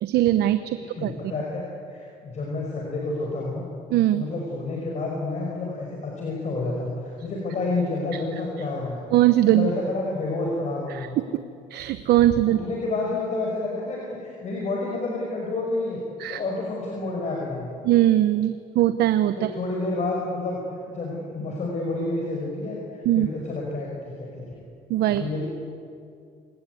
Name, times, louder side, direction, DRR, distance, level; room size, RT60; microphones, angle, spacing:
voice 1, 0.0-1.1 3.9-4.2 9.1-9.7 10.9-11.1 11.7-12.6 16.2-16.4 17.8-19.5 23.0-23.3 24.9-25.3, right 13 dB, 75° right, 11 dB, 0.9 m, -20 dB
voice 2, 0.8-1.6 1.9-3.7 4.1-9.0 9.5-11.2 12.5-16.0 16.2-17.7 19.4-20.6 20.9-24.6 25.1-25.4, left 2 dB, 45° left, -1 dB, 5.7 m, -29 dB
29.0 x 18.0 x 9.3 m, 2.5 s
cardioid pair, 110°, 17 cm